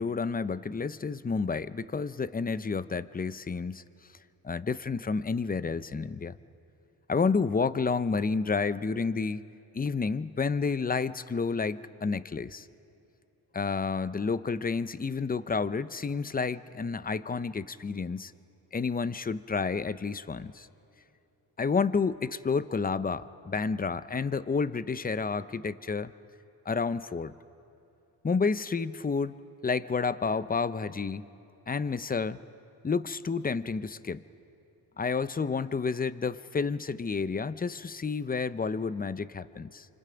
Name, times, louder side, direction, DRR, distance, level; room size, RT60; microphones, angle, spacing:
voice 1, 0.0-3.8 4.4-6.3 7.1-9.5 9.7-12.7 13.5-18.3 18.7-20.7 21.6-26.1 26.7-27.3 28.2-29.3 29.6-31.3 31.7-32.4 32.8-34.2 35.0-39.9, left 5 dB, 20° left, 14 dB, 0.7 m, -30 dB
29.0 x 26.0 x 5.2 m, 2.8 s
cardioid pair, 80°, 43 cm